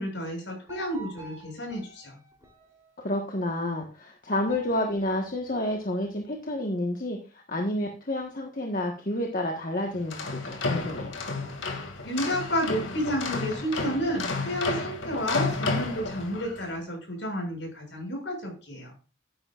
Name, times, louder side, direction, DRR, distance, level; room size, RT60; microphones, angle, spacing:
voice 1, 0.0-2.2 12.0-18.9, equal, 70° left, 0 dB, 7.0 m, -31 dB
sound 1, 0.7-3.4 4.4-6.2, right 2 dB, 15° right, 3.3 m, -51 dB
voice 2, 3.0-11.1, left 1 dB, 45° left, 1 dB, 1.4 m, -30 dB
sound 2, 9.9-16.6, left 3 dB, 85° left, 2.4 m, -31 dB
13.0 x 10.5 x 2.5 m, 0.34 s
head